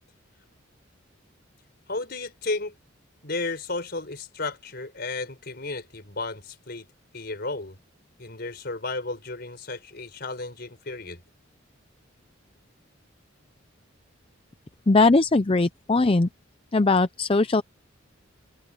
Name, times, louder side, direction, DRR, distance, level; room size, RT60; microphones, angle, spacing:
voice 1, 1.9-2.7 3.2-6.9 7.1-7.8 8.2-11.2, left 3 dB, 50° left, 4.8 m, -33 dB
voice 2, 14.9-16.3 16.7-17.6, left 3 dB, 25° left, 0.5 m, -20 dB
head